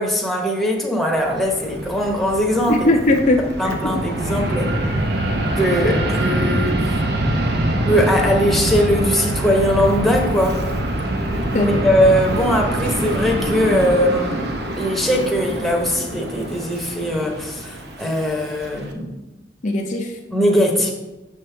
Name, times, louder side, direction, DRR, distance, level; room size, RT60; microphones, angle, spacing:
voice 1, 0.0-2.9 3.6-4.7 5.4-6.8 7.8-10.6 11.5-19.1 20.3-20.9, equal, ahead, -1 dB, 0.9 m, -20 dB
Fixed-wing aircraft airplane, 1.1-18.9, right 1 dB, 65° right, 0.8 m, -24 dB
voice 2, 2.7-4.0 11.5-11.8 19.6-20.2, left 2 dB, 45° left, 2 dB, 0.6 m, -19 dB
6.5 x 6.4 x 3.4 m, 1.0 s
head